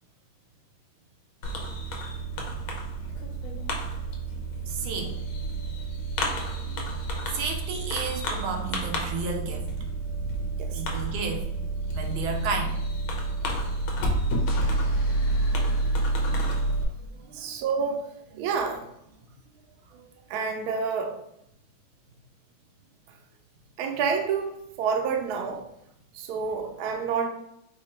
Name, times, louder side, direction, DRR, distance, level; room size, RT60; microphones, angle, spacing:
Fireworks, 1.4-16.8, right 2 dB, 80° left, 1.6 m, -29 dB
voice 1, 4.7-5.2 6.6-6.7 7.3-9.7 10.7-11.5 11.9-12.8 14.1-14.2 17.0-17.5 18.4-18.5 19.9-20.0, right 4 dB, 85° right, 3 dB, 1.6 m, -32 dB
sound 1, 14.5-17.0, left 1 dB, 60° left, 1.2 m, -40 dB
voice 2, 17.3-18.8 20.3-21.2 23.8-25.6 26.1-27.3, right 5 dB, 70° right, 4 dB, 1.0 m, -29 dB
4.9 x 2.3 x 4.2 m, 0.79 s
omnidirectional pair, 2.2 m